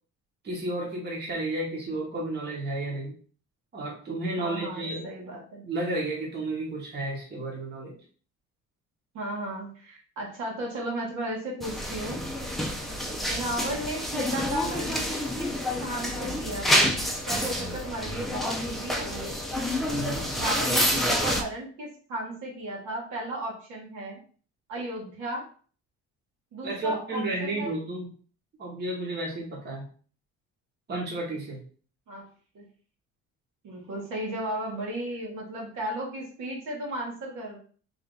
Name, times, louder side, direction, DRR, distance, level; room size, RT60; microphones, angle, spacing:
voice 1, 0.4-3.1 3.7-5.1 5.6-8.0 19.8-20.3 26.6-28.1 28.6-29.8 30.9-31.6, right 2 dB, 35° right, -2 dB, 1.2 m, -32 dB
voice 2, 4.4-5.6 9.1-12.2 13.3-15.1 15.4-17.0 17.3-19.4 20.3-24.2 24.7-25.5 26.5-27.7 32.1-32.3 32.5-32.7 33.6-37.6, right 1 dB, 75° right, -2 dB, 1.7 m, -34 dB
sound 1, 11.6-21.4, equal, ahead, 0.5 m, -28 dB
3.4 x 2.8 x 3.8 m, 0.42 s
cardioid pair, 130°, 30 cm